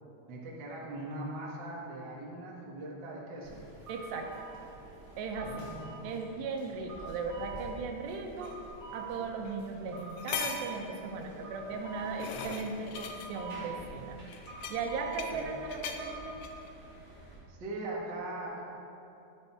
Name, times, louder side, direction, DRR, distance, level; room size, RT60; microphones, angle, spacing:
voice 1, 0.3-3.6 5.4-6.0 15.3-15.4 17.5-18.6, right 2 dB, 50° right, -4 dB, 1.3 m, -40 dB
sound 1, 3.4-17.4, right 4 dB, 15° right, 2.4 m, -46 dB
voice 2, 3.9-4.4 5.2-5.7 6.0-8.6 8.9-14.2 14.7-16.4, right 4 dB, 85° right, 3 dB, 3.1 m, -37 dB
sound 2, 8.4-8.5 9.4-9.6 10.0-10.8 11.7-13.3 14.3-15.4 15.7-16.0 16.4-16.7, left 7 dB, 90° left, 2.7 m, -39 dB
12.0 x 9.7 x 4.4 m, 2.8 s
omnidirectional pair, 4.8 m